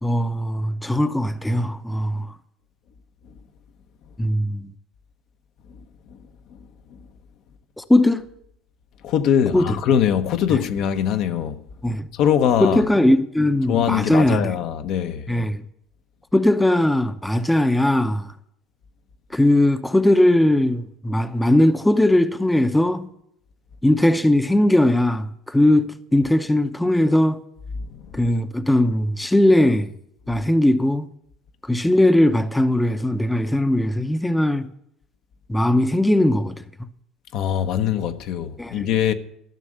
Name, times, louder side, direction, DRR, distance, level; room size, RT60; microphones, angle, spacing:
voice 1, 0.0-2.4 4.2-4.7 7.8-8.3 9.5-9.8 10.5-10.6 11.8-12.1 12.6-14.5 15.3-15.6 16.3-18.3 19.3-23.1 23.8-27.4 28.1-29.9 30.3-31.1 31.6-34.7 35.5-36.9 38.6-38.9, left 1 dB, 5° left, 0.7 m, -19 dB
voice 2, 9.0-11.6 12.2-12.8 13.7-15.3 27.9-28.0 37.3-39.1, left 9 dB, 65° left, 0.9 m, -22 dB
13.5 x 6.3 x 7.9 m
supercardioid pair, 100°, 0 cm